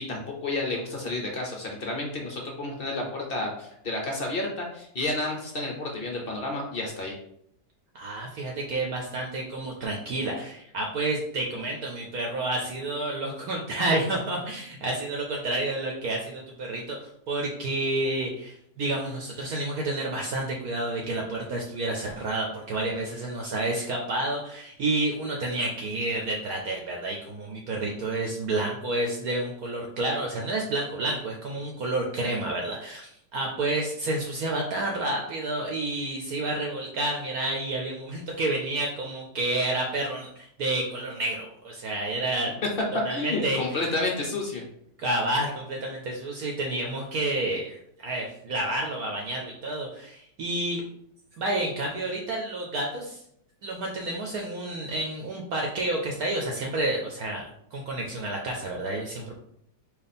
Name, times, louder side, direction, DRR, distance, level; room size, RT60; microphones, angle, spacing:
voice 1, 0.0-7.2 43.1-44.6, left 2 dB, 60° left, 0 dB, 0.6 m, -31 dB
voice 2, 7.9-42.5 43.0-43.7 45.0-50.8 51.4-53.2 53.6-59.4, right 2 dB, 65° right, 0 dB, 1.1 m, -30 dB
4.4 x 2.9 x 4.1 m, 0.72 s
omnidirectional pair, 1.9 m